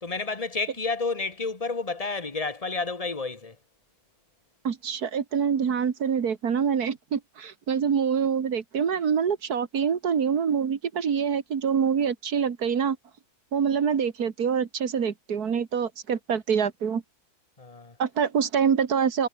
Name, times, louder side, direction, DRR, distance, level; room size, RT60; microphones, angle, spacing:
voice 1, 0.0-3.6 17.6-17.9, left 3 dB, 25° left, 2.0 m, -30 dB
voice 2, 4.6-13.0 13.5-17.0 18.0-19.3, right 7 dB, 80° right, 2.2 m, -25 dB
omnidirectional pair, 1.6 m